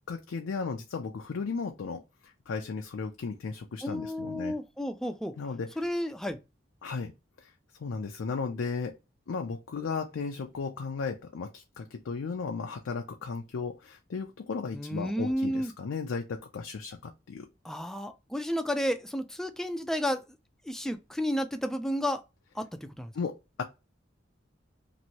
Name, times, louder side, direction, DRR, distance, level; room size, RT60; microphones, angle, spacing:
voice 1, 0.1-4.6 5.4-5.7 6.8-7.1 7.4-7.5 7.8-8.9 9.3-17.5 23.1-23.6, left 5 dB, 85° left, 0.4 m, -35 dB
voice 2, 3.8-5.3 5.8-6.4 14.7-15.7 17.6-20.2 20.7-22.2 22.6-22.7 23.0-23.1, equal, ahead, 0.3 m, -31 dB
2.9 x 2.6 x 2.8 m
head